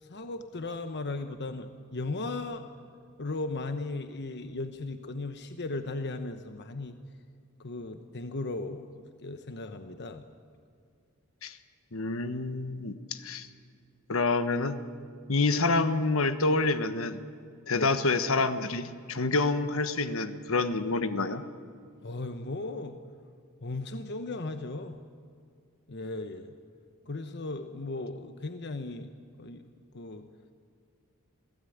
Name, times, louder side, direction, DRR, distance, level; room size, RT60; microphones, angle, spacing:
voice 1, 0.0-2.6 3.2-7.0 7.6-8.9 9.2-10.2 17.7-17.9 22.0-23.0 23.6-25.0 25.9-26.5 27.1-29.1 29.4-29.6 29.9-30.3, left 2 dB, 55° left, 8 dB, 1.1 m, -36 dB
voice 2, 11.9-13.5 14.1-14.8 15.3-17.2 17.7-21.4, left 3 dB, 70° left, 10 dB, 1.3 m, -27 dB
27.5 x 16.5 x 9.4 m, 2.3 s
head